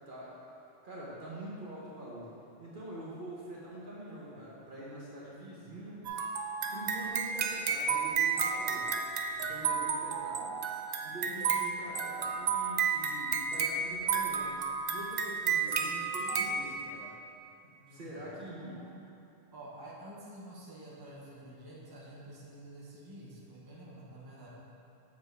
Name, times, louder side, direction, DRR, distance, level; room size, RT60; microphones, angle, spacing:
voice 1, 0.1-0.4 0.8-2.3 2.6-6.0 6.7-8.9 9.3-10.5 11.0-14.6 14.9-17.1 17.6-18.8, right 1 dB, 45° right, -7 dB, 1.3 m, -45 dB
sound 1, 6.0-16.6, right 6 dB, 65° right, 0.4 m, -32 dB
voice 2, 17.8-18.8 19.5-24.5, right 1 dB, 20° right, -7 dB, 1.1 m, -49 dB
7.1 x 7.0 x 3.4 m, 2.8 s
omnidirectional pair, 1.3 m